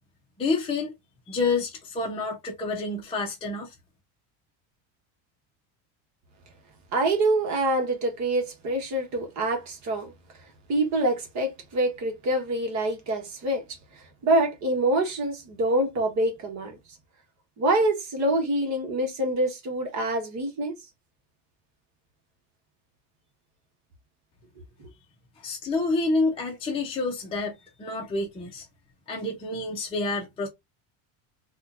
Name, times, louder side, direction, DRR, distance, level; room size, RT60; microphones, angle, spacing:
voice 1, 0.4-0.9 1.3-3.7 25.4-28.7 29.1-30.5, left 3 dB, 15° left, 0.6 m, -28 dB
voice 2, 6.9-10.1 10.7-13.6 14.2-16.8 17.6-20.7, right 1 dB, 45° right, 1.3 m, -25 dB
4.2 x 2.4 x 2.5 m
cardioid pair, 155°, 40 cm